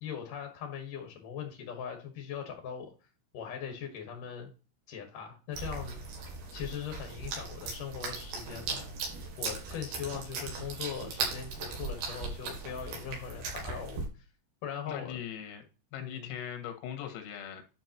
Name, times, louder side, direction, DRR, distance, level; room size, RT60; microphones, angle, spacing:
voice 1, 0.0-2.9 3.3-4.5 4.9-6.0 6.5-8.8 9.4-14.2 14.6-15.1 16.0-16.4, left 8 dB, 60° left, 3 dB, 2.3 m, -40 dB
sound 1, 5.5-14.1, right 4 dB, 60° right, 4.4 m, -38 dB
voice 2, 14.9-15.7 15.9-17.6, left 9 dB, 90° left, 5 dB, 4.2 m, -40 dB
11.0 x 6.3 x 2.9 m, 0.34 s
omnidirectional pair, 5.8 m